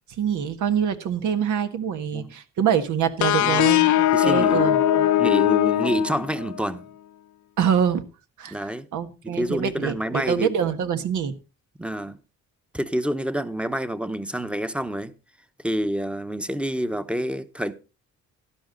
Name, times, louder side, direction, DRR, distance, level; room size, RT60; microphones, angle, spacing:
voice 1, 0.2-5.3 7.6-8.1 8.4-8.6 8.9-11.3, right 8 dB, 75° right, 1.6 m, -25 dB
sound 1, 3.2-6.7, left 12 dB, 70° left, 0.8 m, -20 dB
voice 2, 3.4-3.7 4.1-4.8 5.2-6.9 8.5-8.9 9.2-10.5 11.8-12.2 12.7-15.1 15.6-17.7, equal, 5° right, 1.0 m, -28 dB
12.5 x 11.5 x 4.0 m
cardioid pair, 90°, 30 cm